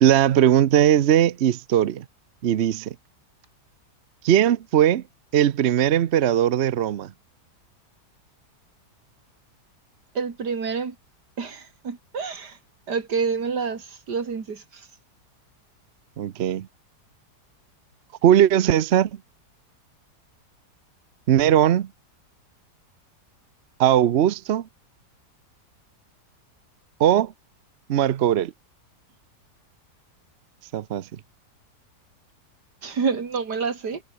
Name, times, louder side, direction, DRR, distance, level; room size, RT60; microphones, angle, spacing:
voice 1, 0.0-2.0 2.4-2.9 4.2-5.0 5.3-7.1 16.2-16.7 18.2-19.1 21.3-21.9 23.8-24.6 27.0-27.3 27.9-28.5 30.7-31.0, right 10 dB, 55° right, 0.8 m, -19 dB
voice 2, 10.1-10.9 11.4-12.6 12.9-14.6 32.8-34.0, right 5 dB, 80° right, 3.0 m, -28 dB
omnidirectional pair, 1.8 m